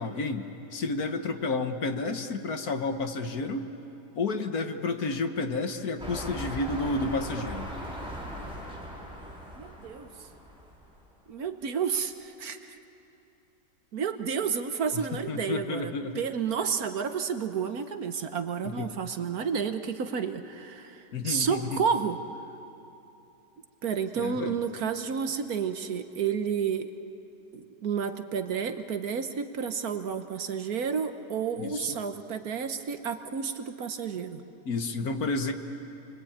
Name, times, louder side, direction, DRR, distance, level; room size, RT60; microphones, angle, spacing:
voice 1, 0.0-3.7 4.1-7.7 14.9-16.2 18.6-18.9 21.1-21.8 24.1-24.6 31.6-31.9 34.6-35.5, left 3 dB, 60° left, 6 dB, 1.7 m, -31 dB
sound 1, 6.0-11.0 11.6-11.7, equal, 5° right, 4.5 m, -39 dB
voice 2, 9.6-10.1 11.3-12.8 13.9-22.2 23.8-26.9 27.5-34.4, right 6 dB, 60° right, 8 dB, 1.5 m, -31 dB
28.5 x 23.5 x 8.8 m, 3.0 s
omnidirectional pair, 1.8 m